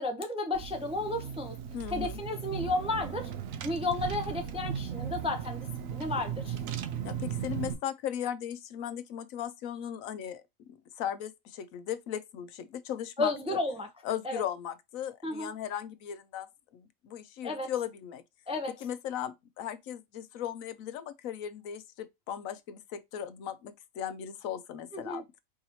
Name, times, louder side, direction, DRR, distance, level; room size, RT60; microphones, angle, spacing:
voice 1, 0.0-1.5 1.9-3.3 3.6-5.7 5.9-6.6 13.2-13.9 14.2-14.4 15.2-15.5 17.4-17.7 18.5-18.7 24.9-25.2, left 2 dB, 10° right, 0.4 m, -32 dB
Car / Engine, 0.5-7.7, right 8 dB, 80° right, 1.0 m, -37 dB
voice 2, 1.7-2.2 7.0-13.6 14.0-16.5 16.7-18.2 18.8-25.2, left 10 dB, 85° left, 1.0 m, -37 dB
4.7 x 2.8 x 2.9 m
omnidirectional pair, 1.4 m